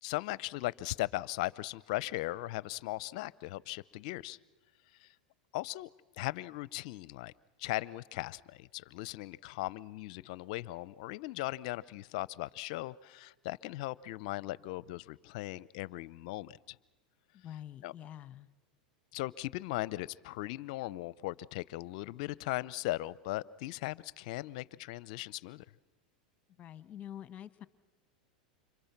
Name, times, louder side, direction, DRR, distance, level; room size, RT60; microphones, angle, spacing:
voice 1, 0.0-4.4 5.0-5.1 5.5-5.9 6.1-7.3 7.6-16.8 17.8-17.9 19.1-25.6, left 18 dB, 60° left, 21 dB, 0.7 m, -38 dB
voice 2, 17.3-18.5 26.6-27.7, left 11 dB, 35° left, 13 dB, 1.5 m, -46 dB
29.5 x 26.5 x 6.0 m, 1.2 s
hypercardioid pair, 100°, 4 cm